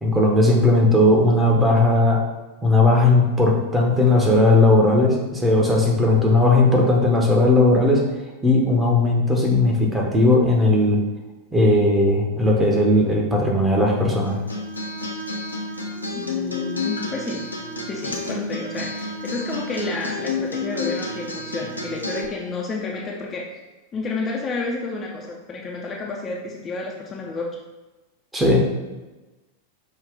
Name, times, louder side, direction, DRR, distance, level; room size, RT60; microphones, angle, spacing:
voice 1, 0.0-2.2 2.6-8.0 8.4-11.0 11.5-14.4 28.3-28.6, left 2 dB, 10° right, -1 dB, 0.9 m, -17 dB
Acoustic guitar, 14.3-22.2, left 2 dB, 85° left, 0.6 m, -30 dB
voice 2, 16.1-17.5 17.9-23.5 23.9-27.6, left 3 dB, 25° left, -2 dB, 0.5 m, -30 dB
5.3 x 2.3 x 3.6 m, 1.1 s
figure-of-eight pair, 90°, 0 cm